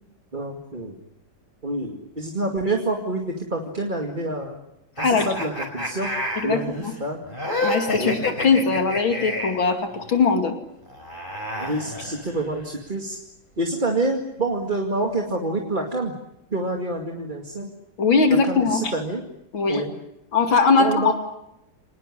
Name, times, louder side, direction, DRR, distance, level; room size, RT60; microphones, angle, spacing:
voice 1, 0.3-1.0 1.6-4.6 5.0-6.1 6.4-7.2 8.0-8.2 11.6-13.2 13.6-16.1 16.5-17.7 18.3-19.2 19.7-19.9 20.8-21.1, right 2 dB, 25° right, 2 dB, 2.4 m, -27 dB
sound 1, 5.0-9.7 10.9-12.6, left 1 dB, 25° left, 5.1 m, -29 dB
voice 2, 7.6-10.5 18.0-18.9 19.5-19.8 20.3-21.1, left 4 dB, 80° left, 5 dB, 3.4 m, -20 dB
26.5 x 19.5 x 9.9 m, 0.86 s
omnidirectional pair, 2.1 m